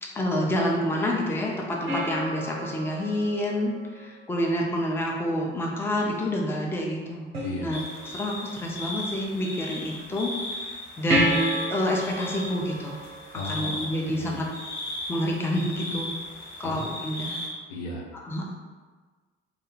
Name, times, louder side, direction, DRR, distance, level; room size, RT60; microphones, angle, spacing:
voice 1, 0.1-7.3 7.6-7.8 8.1-10.7 11.0-13.0 13.5-14.5 15.1-16.1 16.6-17.4 18.2-18.5, equal, 10° left, -1 dB, 0.4 m, -28 dB
sound 1, 1.9-4.5 7.3-8.3 11.1-14.0 17.1-17.2, equal, 85° right, 0.5 m, -31 dB
voice 2, 7.4-8.1 13.3-14.4 16.6-16.8 17.7-18.1, left 1 dB, 75° left, -1 dB, 0.5 m, -36 dB
sound 2, 7.7-17.5, left 1 dB, 55° left, 1.0 m, -37 dB
2.5 x 2.2 x 3.0 m, 1.4 s
figure-of-eight pair, 50°, 30 cm